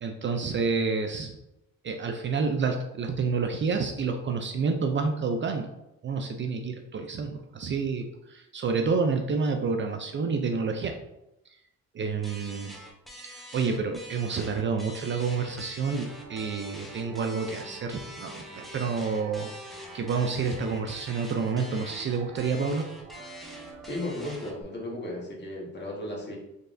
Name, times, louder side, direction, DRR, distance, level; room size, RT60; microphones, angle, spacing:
voice 1, 0.0-1.3 1.8-5.7 6.0-11.0 11.9-12.7 13.2-22.9, right 5 dB, 40° right, 5 dB, 0.4 m, -29 dB
sound 1, 12.2-24.6, equal, ahead, 0.7 m, -45 dB
sound 2, 15.9-24.8, right 3 dB, 80° right, 0.8 m, -47 dB
voice 2, 23.8-26.4, left 1 dB, 35° left, -3 dB, 1.4 m, -35 dB
3.9 x 3.3 x 2.5 m, 0.89 s
cardioid pair, 90°, 30 cm